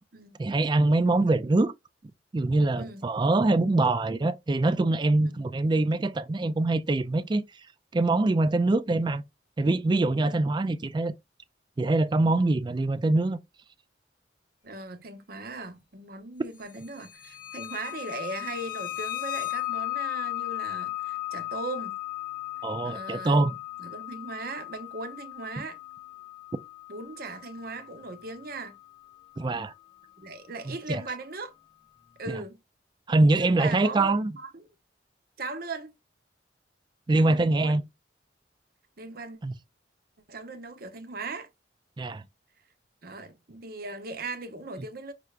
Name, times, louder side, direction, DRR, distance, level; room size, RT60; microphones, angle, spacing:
voice 1, 0.4-1.7 2.3-7.4 7.9-9.2 9.6-11.1 11.8-13.4 22.6-23.5 29.4-29.7 30.7-31.0 33.1-34.3 37.1-37.8 39.4-39.5 42.0-42.2, right 2 dB, 25° right, 0.3 m, -24 dB
voice 2, 2.8-3.1 5.2-5.5 10.3-10.5 14.6-22.0 22.8-23.5 23.8-25.8 26.9-28.8 30.2-31.5 32.2-32.6 33.3-34.7 35.4-35.9 37.2-37.8 39.0-39.4 40.3-41.5 43.0-45.1, right 3 dB, 55° right, 0.9 m, -39 dB
sound 1, 17.2-29.7, left 16 dB, 50° left, 0.6 m, -36 dB
6.0 x 3.3 x 2.4 m
head